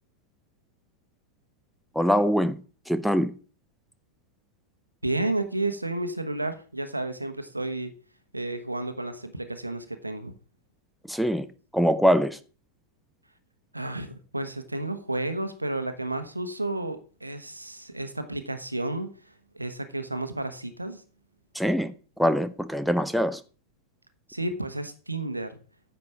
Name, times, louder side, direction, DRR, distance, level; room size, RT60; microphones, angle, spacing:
voice 1, 1.9-2.6 2.9-3.3 11.1-11.5 11.7-12.4 21.5-21.9 22.2-23.4, equal, ahead, 0.7 m, -23 dB
voice 2, 5.0-7.9 8.3-10.3 13.7-21.0 24.3-25.6, right 2 dB, 85° right, 1.1 m, -32 dB
9.6 x 6.8 x 4.7 m
figure-of-eight pair, 90°, 0 cm